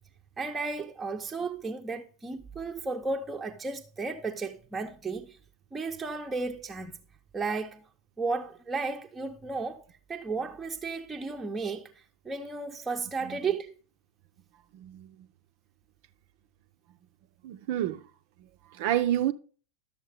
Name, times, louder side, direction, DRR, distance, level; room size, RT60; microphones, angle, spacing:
voice 1, 0.4-5.4 5.7-6.9 7.3-7.8 8.2-9.8 10.1-11.9 12.2-13.7, right 4 dB, 10° right, 0.8 m, -34 dB
voice 2, 14.7-15.2 17.4-18.0 18.7-19.3, right 12 dB, 50° right, 0.6 m, -29 dB
12.0 x 7.1 x 3.5 m
figure-of-eight pair, 90°, 0 cm